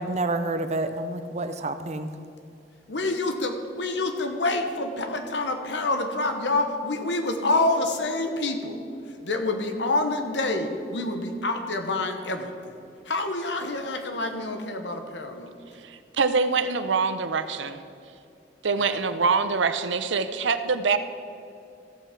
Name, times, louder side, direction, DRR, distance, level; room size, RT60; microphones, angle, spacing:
voice 1, 0.0-2.1, right 2 dB, 40° right, 10 dB, 0.6 m, -28 dB
voice 2, 2.9-8.8 9.2-12.8 13.0-15.5 18.7-18.9, left 2 dB, 75° left, 5 dB, 1.1 m, -27 dB
voice 3, 15.8-17.8 18.6-21.0, right 4 dB, 90° right, 10 dB, 0.6 m, -24 dB
14.5 x 5.6 x 6.0 m, 2.6 s
head